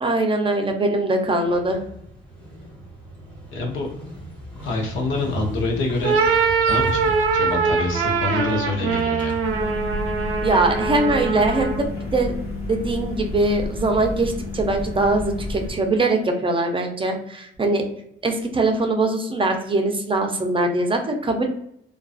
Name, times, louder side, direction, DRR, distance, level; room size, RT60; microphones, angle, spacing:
voice 1, 0.0-1.8 10.4-12.3 12.7-17.9 18.2-21.5, right 2 dB, 25° right, 3 dB, 0.5 m, -22 dB
Motorcycle, 1.4-9.8, right 1 dB, 5° left, 1.0 m, -37 dB
voice 2, 3.5-3.9 4.6-6.1 6.7-9.4, left 3 dB, 75° left, 1 dB, 0.8 m, -26 dB
sound 1, 5.9-11.9, right 5 dB, 90° right, 0.6 m, -22 dB
sound 2, 9.4-15.7, left 2 dB, 50° left, 1.0 m, -30 dB
2.4 x 2.3 x 2.3 m, 0.72 s
cardioid pair, 90°, 20 cm